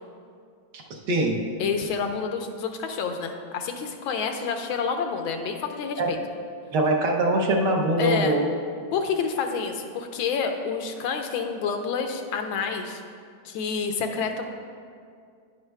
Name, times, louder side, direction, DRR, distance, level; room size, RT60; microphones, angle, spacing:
voice 1, 0.9-1.5 6.0-6.1 6.7-8.5, right 2 dB, 65° right, 0 dB, 1.4 m, -23 dB
voice 2, 1.6-6.2 8.0-8.4 8.9-13.0 13.4-14.4, left 5 dB, 85° left, 5 dB, 1.5 m, -28 dB
10.5 x 10.0 x 2.2 m, 2.2 s
omnidirectional pair, 2.2 m